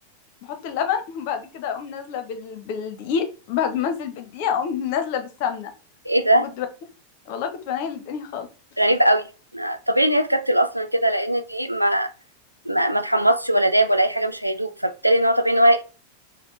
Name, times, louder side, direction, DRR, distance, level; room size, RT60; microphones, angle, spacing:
voice 1, 0.4-5.7 6.3-6.7 7.3-8.5, left 7 dB, 50° left, 0.7 m, -27 dB
voice 2, 6.1-6.5 8.8-9.2 9.5-12.1 12.7-15.8, right 1 dB, 90° right, 0.3 m, -20 dB
3.6 x 2.1 x 3.8 m
figure-of-eight pair, 90°, 0 cm